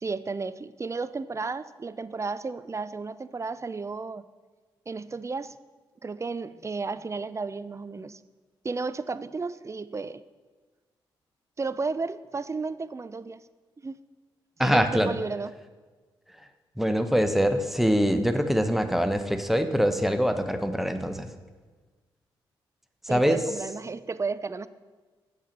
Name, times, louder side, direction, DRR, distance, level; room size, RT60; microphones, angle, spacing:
voice 1, 0.0-4.2 4.9-5.5 6.0-8.2 8.6-10.2 11.6-13.4 13.8-14.0 14.6-15.5 23.1-24.7, right 4 dB, 30° right, 15 dB, 0.5 m, -33 dB
voice 2, 14.6-15.1 16.8-21.3 23.0-23.4, equal, ahead, 8 dB, 1.0 m, -24 dB
8.4 x 6.8 x 6.0 m, 1.3 s
supercardioid pair, 45°, 10 cm